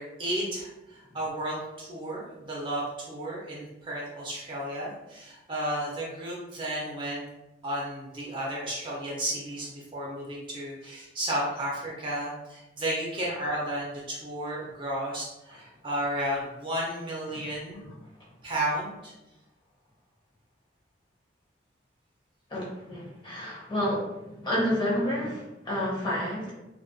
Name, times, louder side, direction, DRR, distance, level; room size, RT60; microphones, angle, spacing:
voice 1, 0.0-7.2 7.6-17.9 18.4-19.1, right 1 dB, 25° right, -5 dB, 0.5 m, -33 dB
voice 2, 22.5-24.0 24.4-26.5, equal, 25° left, -6 dB, 0.7 m, -29 dB
2.3 x 2.2 x 2.5 m, 0.97 s
head